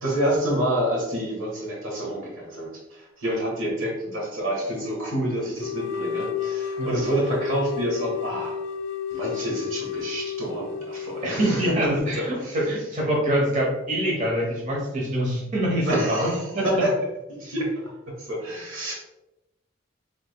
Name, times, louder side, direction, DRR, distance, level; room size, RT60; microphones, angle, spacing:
voice 1, 0.0-8.6 9.1-11.8 12.1-12.6 15.8-16.9 17.4-17.7 18.2-18.9, right 1 dB, 80° right, -2 dB, 1.4 m, -28 dB
sound 1, 5.6-12.4, left 7 dB, 65° left, 0.3 m, -32 dB
voice 2, 11.2-16.6, right 1 dB, 40° right, -3 dB, 0.9 m, -25 dB
4.8 x 3.5 x 2.2 m, 0.95 s
head